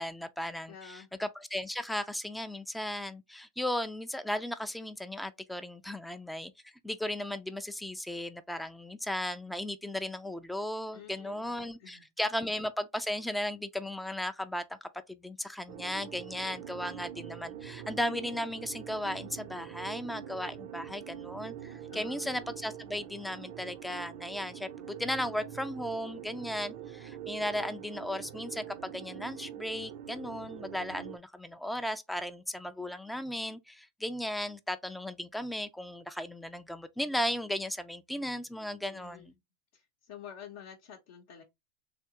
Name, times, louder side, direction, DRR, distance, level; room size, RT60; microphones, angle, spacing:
voice 1, 0.0-6.5 6.8-39.3, left 1 dB, 5° left, 0.3 m, -36 dB
voice 2, 0.7-1.1 10.9-11.5 11.8-12.1 21.9-22.3 38.9-39.3 39.7-41.4, left 8 dB, 65° left, 0.7 m, -49 dB
sound 1, 15.7-31.2, right 10 dB, 60° right, 0.4 m, -44 dB
3.4 x 2.7 x 2.8 m
hypercardioid pair, 105°, 0 cm